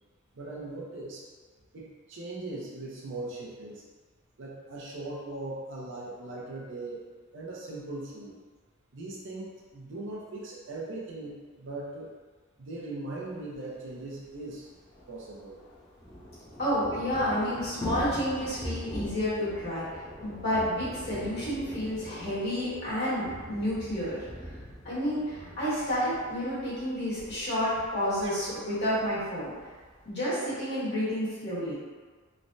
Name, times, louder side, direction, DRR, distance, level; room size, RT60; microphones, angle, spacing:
voice 1, 0.3-1.3 1.7-3.8 4.4-7.0 7.3-8.4 8.9-12.1 12.6-14.7 15.1-15.6 28.2-28.3, right 2 dB, 65° right, -4 dB, 0.6 m, -39 dB
Thunder / Rain, 13.5-13.6 13.8-13.9 14.2-30.1, equal, 20° left, 0.5 m, -43 dB
voice 2, 16.6-19.9 20.2-24.2 24.8-29.5 30.0-31.7, equal, 55° left, -11 dB, 1.4 m, -30 dB
3.1 x 2.1 x 2.6 m, 1.5 s
head